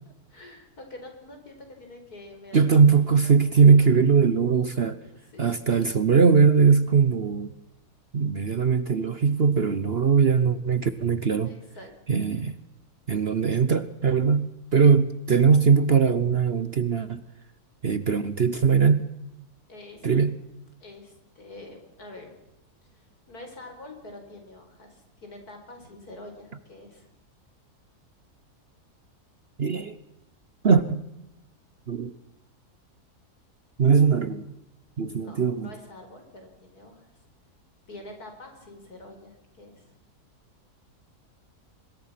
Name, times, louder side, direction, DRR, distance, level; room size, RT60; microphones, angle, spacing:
voice 1, 0.3-3.3 5.0-5.7 11.4-11.9 19.7-20.2 20.8-22.3 22.8-27.1 35.1-37.1 37.9-40.0, left 2 dB, 70° left, 4 dB, 5.3 m, -46 dB
voice 2, 2.5-5.0 5.4-7.5 8.1-11.5 12.1-12.6 13.1-17.2 17.8-19.1 20.0-20.3 29.6-30.0 30.6-31.0 31.9-32.1 33.8-34.4 35.0-35.7, right 5 dB, 45° right, 13 dB, 1.0 m, -20 dB
25.0 x 21.5 x 5.9 m, 0.94 s
omnidirectional pair, 1.7 m